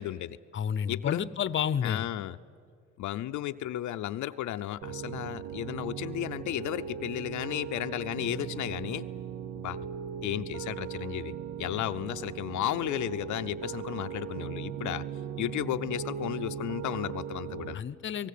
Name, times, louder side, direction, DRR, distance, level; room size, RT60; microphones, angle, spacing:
voice 1, 0.0-0.4 0.9-1.3 1.8-2.4 3.0-9.1 9.6-9.8 10.2-11.3 11.6-15.0 15.4-17.8, left 13 dB, 75° left, 8 dB, 0.6 m, -34 dB
voice 2, 0.5-2.1 17.7-18.3, left 8 dB, 40° left, 17 dB, 0.7 m, -30 dB
Piano, 4.8-17.7, right 8 dB, 70° right, 0.8 m, -38 dB
27.5 x 18.5 x 8.4 m, 2.3 s
cardioid pair, 90°, 30 cm